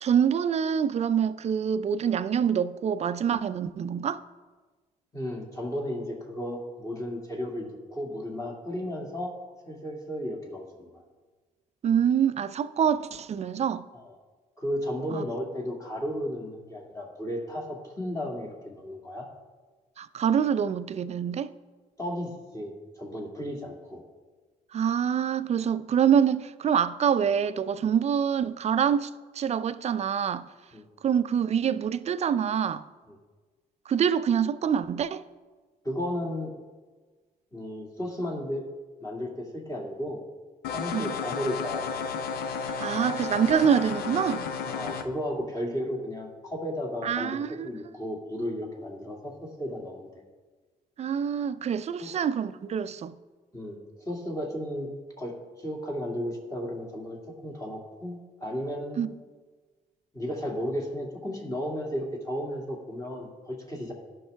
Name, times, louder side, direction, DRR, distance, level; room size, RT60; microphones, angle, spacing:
voice 1, 0.0-4.2 11.8-13.8 15.1-15.2 20.0-21.5 24.7-29.1 29.4-30.5 31.0-32.8 33.9-35.2 40.9-41.1 42.8-44.5 47.0-47.7 51.0-53.1 59.0-59.1, right 8 dB, 45° right, 0.5 m, -25 dB
voice 2, 5.1-9.3 9.7-11.0 13.9-14.1 14.6-19.3 22.0-24.0 30.7-30.9 33.1-33.2 35.8-36.5 37.5-38.6 39.0-40.2 40.7-41.9 44.7-50.2 52.0-52.1 53.5-54.9 55.2-59.0 60.1-63.9, equal, 20° left, 2.1 m, -34 dB
sound 1, 40.6-45.0, left 6 dB, 85° left, 0.6 m, -32 dB
13.0 x 5.4 x 3.4 m
supercardioid pair, 65°, 16 cm